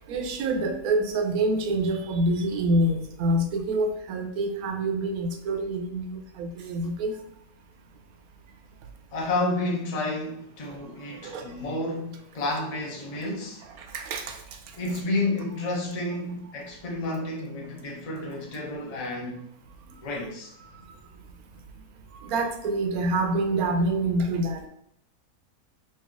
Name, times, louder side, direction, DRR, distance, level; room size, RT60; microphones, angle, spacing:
voice 1, 0.0-7.2 11.2-11.5 13.8-14.6 22.1-24.6, right 2 dB, 75° right, 1.0 m, -26 dB
voice 2, 9.1-13.6 14.8-19.4 20.0-20.5, left 2 dB, 40° left, 0.6 m, -30 dB
3.2 x 2.8 x 3.6 m
omnidirectional pair, 1.6 m